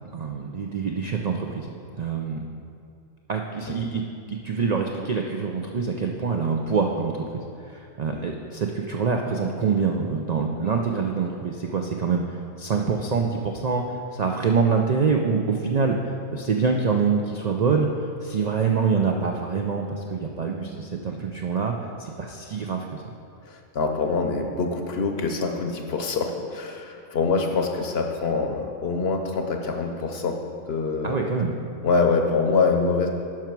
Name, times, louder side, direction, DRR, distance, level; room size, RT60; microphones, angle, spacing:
voice 1, 0.1-2.4 3.3-4.0 4.3-13.8 14.1-21.7 22.0-23.0 31.0-31.5, right 5 dB, 85° right, 2 dB, 0.3 m, -25 dB
voice 2, 23.5-30.4 30.7-31.1 31.8-33.1, left 4 dB, 55° left, 4 dB, 0.9 m, -25 dB
10.5 x 5.9 x 4.6 m, 2.4 s
omnidirectional pair, 1.4 m